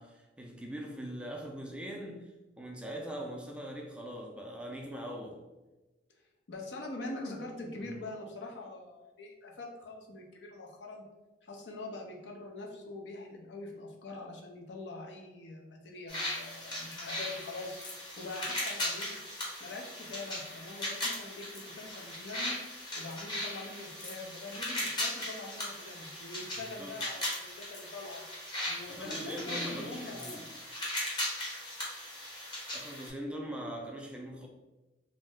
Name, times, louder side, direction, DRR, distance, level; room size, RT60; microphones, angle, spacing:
voice 1, 0.0-5.4 26.6-27.0 28.9-30.5 32.7-34.5, equal, 5° right, 0 dB, 0.3 m, -41 dB
voice 2, 6.5-11.0 11.4-17.8 18.2-19.2 19.6-22.6 23.0-28.2 28.7-30.5, left 2 dB, 80° left, 0 dB, 0.5 m, -44 dB
sound 1, 16.1-33.1, left 1 dB, 25° left, 0.8 m, -38 dB
2.5 x 2.0 x 3.5 m, 1.1 s
head